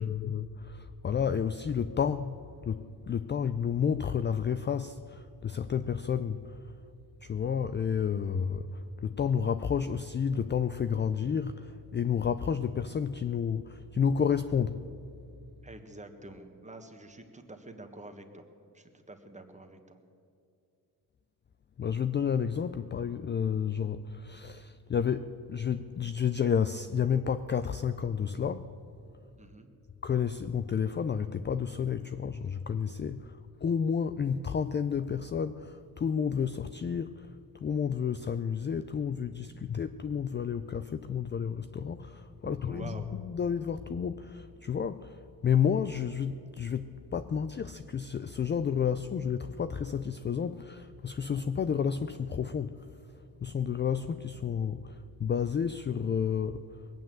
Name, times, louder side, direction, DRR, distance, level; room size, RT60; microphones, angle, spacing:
voice 1, 0.0-2.4 2.6-6.6 7.2-14.8 21.8-28.7 30.0-37.3 37.6-42.9 43.2-52.8 53.4-56.6, left 7 dB, 30° left, 11 dB, 0.4 m, -31 dB
voice 2, 15.6-18.4 18.7-20.0 29.4-29.7 39.5-39.6 42.4-43.1, right 2 dB, 20° right, 5 dB, 1.5 m, -47 dB
20.5 x 9.2 x 7.7 m, 2.5 s
cardioid pair, 100°, 40 cm